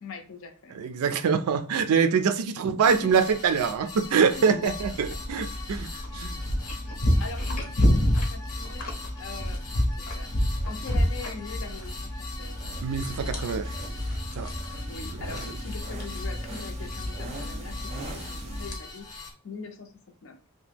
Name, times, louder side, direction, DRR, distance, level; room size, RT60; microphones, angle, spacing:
voice 1, 0.0-0.8 2.5-3.1 4.1-4.7 5.1-5.2 7.2-8.9 9.2-10.3 10.7-12.7 14.9-19.9 20.2-20.4, left 4 dB, 60° left, 0.6 m, -42 dB
voice 2, 0.7-5.8 6.1-6.4 12.8-13.7 14.4-14.5, right 6 dB, 80° right, 0.4 m, -24 dB
sound 1, 2.8-19.3, left 3 dB, 15° left, 0.7 m, -42 dB
sound 2, 4.6-18.8, equal, 80° left, 0.9 m, -29 dB
sound 3, 10.5-18.7, right 2 dB, 30° right, 0.5 m, -43 dB
2.9 x 2.1 x 3.4 m
head